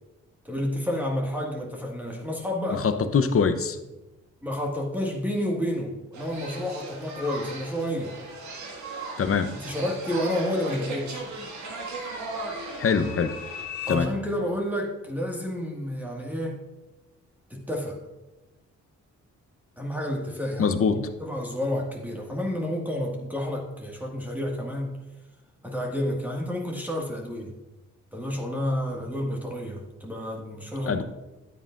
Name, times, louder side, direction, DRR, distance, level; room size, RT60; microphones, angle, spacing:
voice 1, 0.4-2.9 4.4-8.2 9.6-11.3 13.8-16.6 17.5-18.0 19.8-25.0 25.6-27.6 28.1-31.0, left 1 dB, 5° right, -1 dB, 1.8 m, -30 dB
voice 2, 2.7-3.8 9.2-9.5 12.8-13.3 13.9-14.1 20.6-21.1 30.9-31.0, left 5 dB, 45° left, 10 dB, 0.8 m, -23 dB
sound 1, 6.1-13.6, right 3 dB, 65° right, 1.9 m, -37 dB
sound 2, 9.6-14.0, left 9 dB, 75° left, 1.1 m, -42 dB
10.0 x 9.1 x 2.5 m, 1.0 s
supercardioid pair, 60°, 31 cm